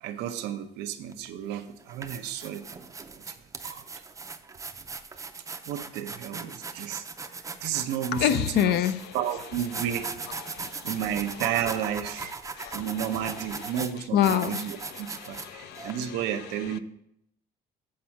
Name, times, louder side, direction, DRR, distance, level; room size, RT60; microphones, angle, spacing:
voice 1, 0.0-2.6 3.2-3.3 3.6-3.8 5.7-7.1 7.6-8.8 9.1-10.2 10.8-16.8, right 10 dB, 90° right, 6 dB, 0.7 m, -32 dB
sound 1, 1.1-1.3 1.8-15.9, right 4 dB, 20° right, 0.5 m, -39 dB
voice 2, 8.1-9.2 10.5-11.0 12.6-13.1 13.5-13.6 14.1-16.2, left 10 dB, 75° left, 12 dB, 0.5 m, -28 dB
7.6 x 4.3 x 5.7 m, 0.79 s
cardioid pair, 110°, 17 cm